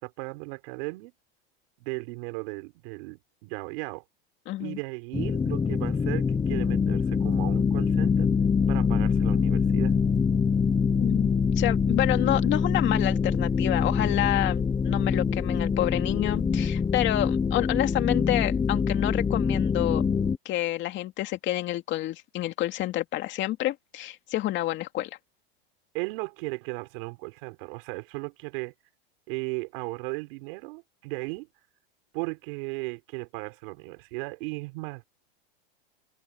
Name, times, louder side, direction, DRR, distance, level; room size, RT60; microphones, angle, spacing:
voice 1, 0.0-1.1 1.8-4.0 4.6-8.3 8.7-10.0 25.9-28.7 29.3-31.5 32.1-35.1, right 28 dB, 60° right, 4.6 m, -36 dB
voice 2, 4.5-4.8 11.0-20.0 20.4-25.2, left 15 dB, 40° left, 2.4 m, -28 dB
sound 1, 5.1-20.4, left 6 dB, 15° left, 0.9 m, -24 dB
supercardioid pair, 130°, 31 cm